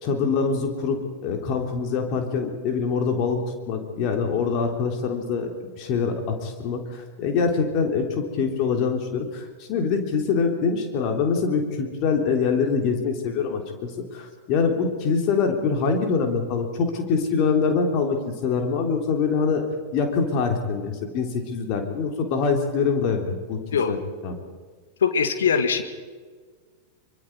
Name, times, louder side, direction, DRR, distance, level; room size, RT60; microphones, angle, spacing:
voice 1, 0.0-9.4 9.7-19.6 19.9-23.6 23.9-24.0 24.2-24.4, left 5 dB, 40° left, 4 dB, 3.6 m, -24 dB
voice 2, 25.0-25.8, left 6 dB, 65° left, 9 dB, 1.9 m, -21 dB
24.0 x 24.0 x 4.8 m, 1.5 s
figure-of-eight pair, 90°, 0 cm